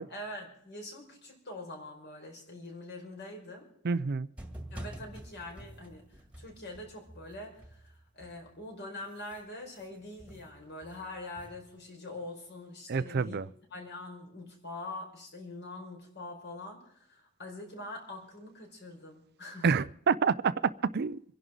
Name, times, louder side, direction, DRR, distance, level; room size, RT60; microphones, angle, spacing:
voice 1, 0.1-3.7 4.7-13.4 13.7-19.7, left 2 dB, 55° left, 5.0 m, -44 dB
voice 2, 3.8-4.3 12.9-13.5 19.6-20.5 20.9-21.2, right 5 dB, 50° right, 0.5 m, -28 dB
sound 1, 4.4-8.6 9.0-11.9, right 1 dB, 5° right, 1.9 m, -48 dB
26.5 x 11.0 x 3.9 m
head